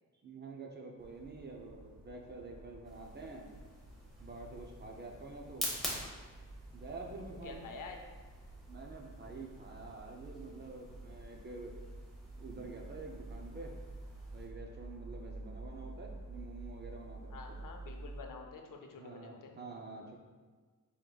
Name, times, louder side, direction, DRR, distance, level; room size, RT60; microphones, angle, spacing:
voice 1, 0.2-3.5 4.2-5.7 6.7-7.7 8.7-11.7 12.3-13.8 14.3-17.4 19.0-20.2, right 3 dB, 30° right, 0 dB, 0.4 m, -48 dB
sound 1, 1.0-18.3, right 2 dB, 80° right, 0.6 m, -50 dB
sound 2, 2.8-14.5, equal, ahead, 0.9 m, -47 dB
voice 2, 7.4-8.0 17.3-19.6, left 4 dB, 75° left, 3 dB, 0.6 m, -48 dB
4.7 x 3.6 x 2.3 m, 1.4 s
wide cardioid pair, 160°, 33 cm